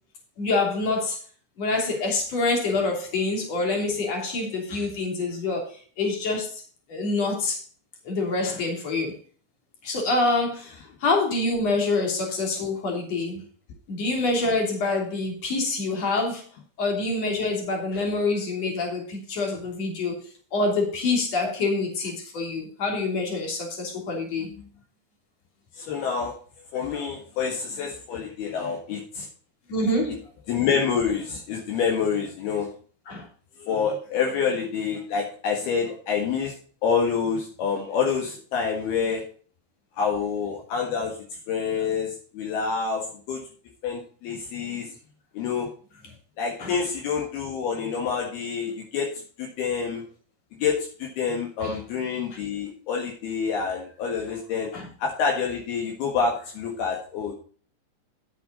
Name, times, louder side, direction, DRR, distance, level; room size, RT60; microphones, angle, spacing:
voice 1, 0.4-1.2 1.6-6.6 6.9-7.6 8.0-9.1 9.8-13.4 13.9-16.4 16.8-24.5 29.7-30.2 33.1-33.3 46.6-46.7 51.6-51.7 54.7-54.9, left 3 dB, 40° left, 1 dB, 4.0 m, -26 dB
voice 2, 25.8-26.4 26.7-29.3 30.5-32.7 33.6-36.5 36.8-39.2 40.0-41.2 41.5-43.4 43.8-44.9 45.3-45.7 46.4-49.1 49.4-50.0 50.6-54.7 55.0-57.3, left 6 dB, 70° left, 1 dB, 3.5 m, -27 dB
10.0 x 8.4 x 4.0 m, 0.42 s
omnidirectional pair, 4.7 m